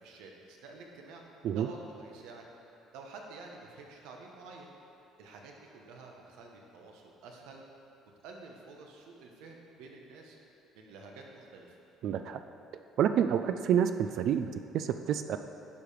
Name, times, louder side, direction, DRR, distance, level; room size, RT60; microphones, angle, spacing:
voice 1, 0.0-1.3 1.5-2.5 2.9-4.7 5.2-7.6 8.2-10.4 10.7-11.8, right 3 dB, 90° right, 1 dB, 1.2 m, -49 dB
voice 2, 12.0-12.4 13.0-15.4, right 9 dB, 60° right, 9 dB, 0.3 m, -28 dB
10.5 x 4.8 x 5.1 m, 2.7 s
cardioid pair, 135°, 0 cm